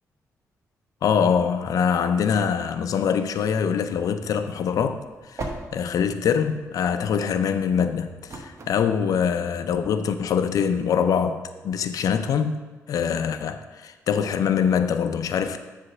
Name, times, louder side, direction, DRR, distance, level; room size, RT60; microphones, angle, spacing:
voice 1, 1.0-5.0 5.3-12.6 12.9-15.6, left 7 dB, 70° left, 9 dB, 0.5 m, -24 dB
sound 1, 4.7-9.7, right 2 dB, 50° right, 1.0 m, -41 dB
7.7 x 3.3 x 6.2 m, 1.3 s
supercardioid pair, 60°, 6 cm